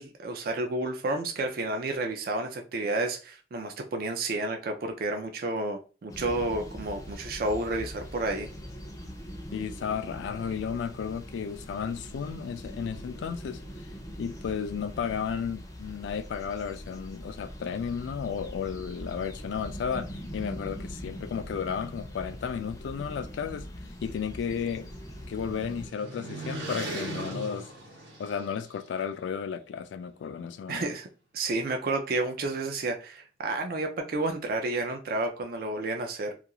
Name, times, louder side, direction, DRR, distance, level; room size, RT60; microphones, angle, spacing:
voice 1, 0.0-8.5 30.7-31.1 31.3-36.3, right 2 dB, 50° right, 0.4 m, -31 dB
sound 1, 6.1-25.9, equal, 15° left, 0.4 m, -42 dB
voice 2, 9.5-13.6 14.2-23.7 24.0-24.9 25.3-27.7 28.2-30.9, left 7 dB, 80° left, 0.3 m, -33 dB
sound 2, 24.0-28.8, right 2 dB, 80° right, 0.9 m, -39 dB
2.4 x 2.3 x 2.8 m
head